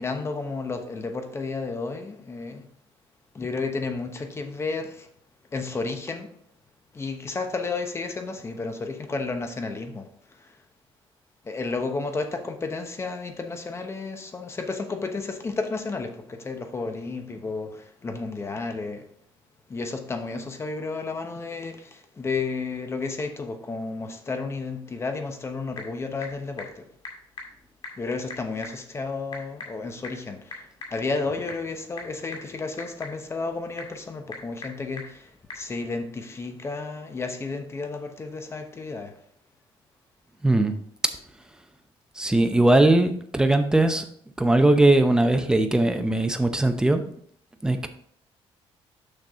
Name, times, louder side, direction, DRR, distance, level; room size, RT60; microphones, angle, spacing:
voice 1, 0.0-2.7 3.3-5.1 5.5-6.3 6.9-10.6 11.4-19.1 19.7-26.9 28.0-39.1, left 3 dB, 25° left, 1.0 m, -32 dB
Typing / Telephone, 25.2-35.7, left 3 dB, 50° left, 2.1 m, -44 dB
voice 2, 40.4-40.8 42.2-44.0 44.4-47.0 47.6-47.9, right 2 dB, 5° right, 0.7 m, -20 dB
6.7 x 5.9 x 3.6 m
cardioid pair, 125°, 11 cm